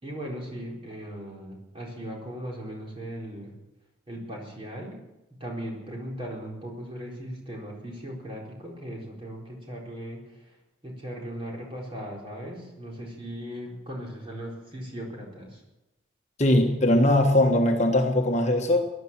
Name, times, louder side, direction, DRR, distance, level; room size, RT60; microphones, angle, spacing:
voice 1, 0.0-3.5 4.1-5.0 5.4-10.2 10.8-15.6, equal, 25° right, -2 dB, 4.2 m, -38 dB
voice 2, 16.4-18.9, left 1 dB, 35° left, 2 dB, 1.4 m, -21 dB
17.0 x 11.5 x 7.5 m, 0.97 s
head